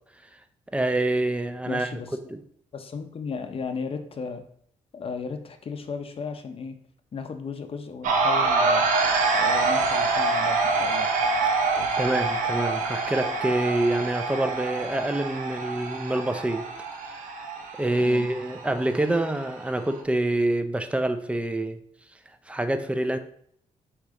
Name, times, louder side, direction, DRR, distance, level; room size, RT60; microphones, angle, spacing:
voice 1, 0.7-2.0 2.3-2.4 12.0-16.6 17.0-17.2 17.8-21.8 22.5-23.2, right 1 dB, 10° right, 8 dB, 0.5 m, -26 dB
voice 2, 1.7-2.1 2.7-4.4 4.9-6.8 7.1-8.8 9.3-11.1 18.0-18.3, left 5 dB, 45° left, 7 dB, 0.6 m, -35 dB
sound 1, 8.0-20.0, right 3 dB, 85° right, 0.7 m, -26 dB
4.8 x 3.0 x 3.6 m, 0.65 s
cardioid pair, 80°, 13 cm